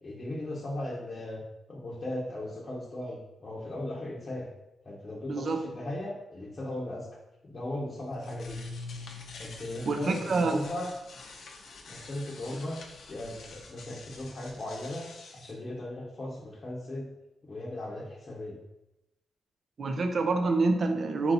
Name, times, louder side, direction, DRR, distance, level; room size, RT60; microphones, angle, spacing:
voice 1, 0.0-1.4 1.7-4.5 4.8-7.1 7.4-8.6 9.4-10.9 11.9-12.8 13.1-15.1 15.3-17.1 17.4-18.6, left 1 dB, 40° left, -4 dB, 0.8 m, -37 dB
voice 2, 5.3-5.6 9.9-10.6 19.8-21.3, right 3 dB, 50° right, 6 dB, 0.5 m, -26 dB
sound 1, 8.0-15.5, left 3 dB, 70° left, 0.6 m, -45 dB
4.4 x 2.7 x 4.0 m, 0.94 s
cardioid pair, 105°, 0 cm